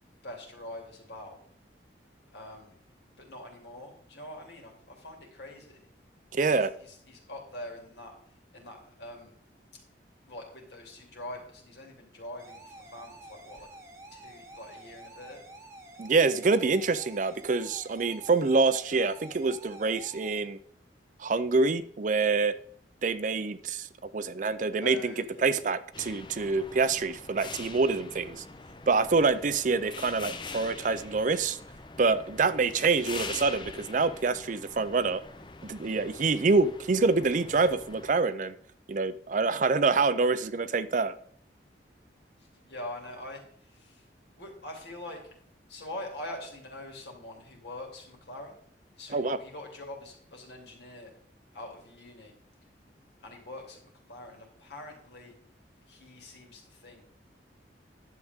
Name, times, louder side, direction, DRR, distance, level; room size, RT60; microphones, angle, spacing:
voice 1, 0.2-1.4 2.3-2.7 3.2-5.8 6.4-8.1 8.5-9.3 10.3-13.7 14.1-15.4 24.8-25.6 29.3-29.6 42.7-44.0 44.4-45.2 45.7-48.5 49.0-51.1 51.5-52.3 53.2-55.4 55.9-57.0, left 1 dB, 65° left, 0 dB, 2.7 m, -44 dB
voice 2, 6.3-6.7 16.0-20.6 21.2-22.6 23.0-28.4 28.9-31.6 32.0-35.2 35.6-38.6 38.9-41.2 49.1-49.4, right 4 dB, 45° right, 13 dB, 0.4 m, -26 dB
sound 1, 12.4-20.4, right 2 dB, 15° right, 1.1 m, -49 dB
sound 2, 25.9-38.1, left 4 dB, 25° left, 0.6 m, -44 dB
10.5 x 7.6 x 3.6 m, 0.62 s
head